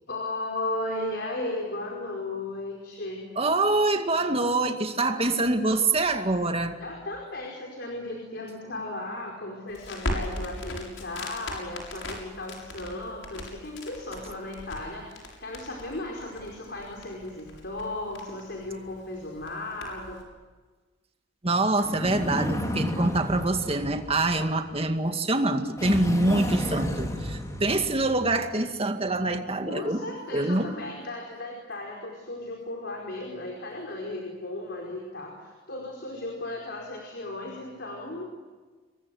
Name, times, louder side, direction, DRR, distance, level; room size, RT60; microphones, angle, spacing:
voice 1, 0.1-3.2 6.8-20.2 29.7-38.3, left 2 dB, 60° left, 0 dB, 5.0 m, -35 dB
voice 2, 3.4-6.8 21.4-30.0 30.3-30.7, right 2 dB, 30° right, 6 dB, 2.2 m, -25 dB
Crackle, 9.7-20.2, left 1 dB, 85° left, 7.2 m, -39 dB
Dragon Roar, 21.8-24.9 25.8-28.5, equal, 15° left, 3.3 m, -32 dB
28.0 x 22.5 x 8.0 m, 1.3 s
head